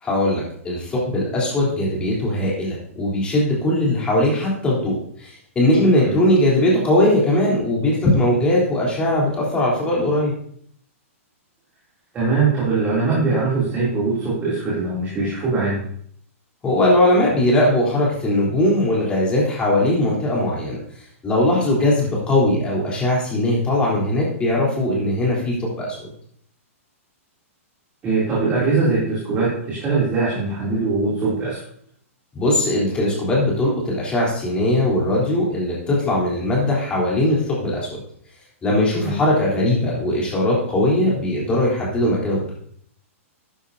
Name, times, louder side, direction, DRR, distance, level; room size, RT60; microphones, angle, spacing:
voice 1, 0.0-10.3 16.6-20.8 21.2-26.1 32.3-37.9 38.6-42.4, left 1 dB, 15° left, -4 dB, 3.6 m, -20 dB
voice 2, 12.1-15.8 28.0-31.6 39.0-39.2, right 3 dB, 20° right, -8 dB, 3.0 m, -21 dB
12.0 x 10.0 x 2.8 m, 0.63 s
hypercardioid pair, 155°, 8 cm